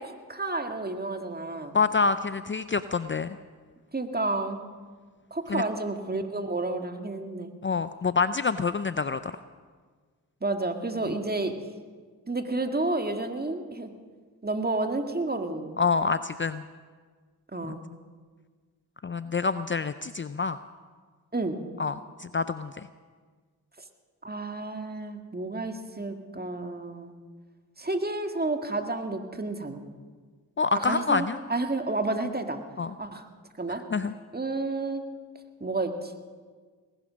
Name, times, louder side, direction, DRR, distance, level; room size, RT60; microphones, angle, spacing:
voice 1, 0.0-1.8 3.9-4.6 5.3-7.5 10.4-11.6 12.3-13.9 14.4-15.8 17.5-17.8 21.3-21.6 24.2-27.1 27.8-29.8 30.7-32.6 33.0-33.3 33.6-33.8 34.3-35.0 35.6-36.1, right 2 dB, 25° right, 6 dB, 1.8 m, -30 dB
voice 2, 1.7-3.4 5.5-5.6 7.6-9.3 15.8-16.6 17.7-17.8 19.0-20.6 21.8-22.7 30.6-31.4 32.8-32.9 33.9-34.1, left 4 dB, 30° left, 13 dB, 0.5 m, -27 dB
19.5 x 11.5 x 6.3 m, 1.5 s
supercardioid pair, 45°, 40 cm